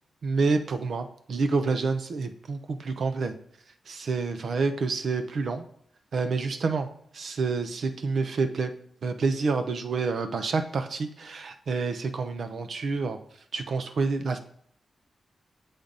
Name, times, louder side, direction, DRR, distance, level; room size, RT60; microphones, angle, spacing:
voice 1, 0.2-3.3 3.9-5.6 6.1-6.9 7.1-8.7 9.0-13.2 13.5-14.4, right 4 dB, 65° right, 8 dB, 0.5 m, -28 dB
7.2 x 5.1 x 3.9 m, 0.64 s
wide cardioid pair, 105°, 0 cm